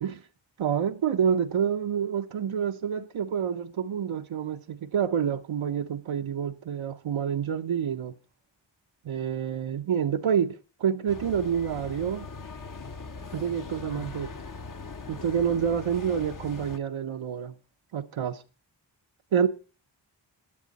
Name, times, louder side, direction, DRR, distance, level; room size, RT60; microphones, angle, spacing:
voice 1, 0.6-8.1 9.0-12.3 13.3-14.3 15.1-17.5 17.9-18.4 19.3-19.5, right 8 dB, 90° right, 0.8 m, -28 dB
sound 1, 11.1-16.8, left 4 dB, 45° left, 0.9 m, -40 dB
16.0 x 9.6 x 4.0 m
wide cardioid pair, 60°, 46 cm